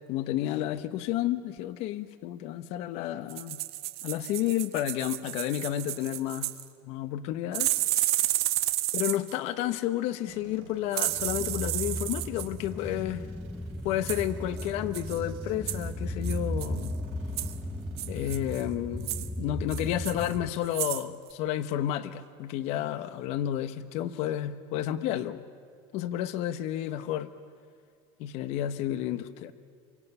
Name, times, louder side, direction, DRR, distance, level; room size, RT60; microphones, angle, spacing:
voice 1, 0.1-3.6 4.0-6.5 6.8-7.7 8.0-8.1 8.9-13.3 13.8-16.9 18.1-25.4 25.9-27.3 28.2-29.5, left 12 dB, 55° left, 12 dB, 1.0 m, -31 dB
sound 1, 3.3-6.7 7.5-9.4 10.9-12.5 14.1-14.3 14.6-14.7 14.9-15.2 15.7-15.9 16.2-16.9 17.4-17.5 18.0-18.6 19.0-19.3 19.7-20.3 20.7-21.0 21.3-21.4, right 16 dB, 85° right, 1.0 m, -31 dB
sound 2, 10.3-18.3, right 10 dB, 60° right, 2.7 m, -54 dB
sound 3, 11.1-20.5, equal, 5° left, 0.7 m, -36 dB
27.0 x 24.5 x 5.5 m, 2.1 s
cardioid pair, 150°, 13 cm